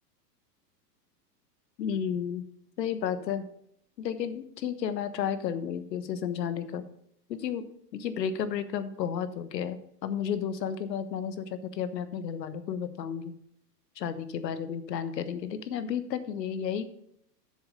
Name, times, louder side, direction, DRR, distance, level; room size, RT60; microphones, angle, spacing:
voice 1, 1.8-2.4 2.8-3.5 4.0-6.8 7.3-7.6 7.9-13.3 14.0-16.9, left 8 dB, 85° left, 13 dB, 1.3 m, -32 dB
7.7 x 6.9 x 6.7 m, 0.74 s
hypercardioid pair, 140°, 49 cm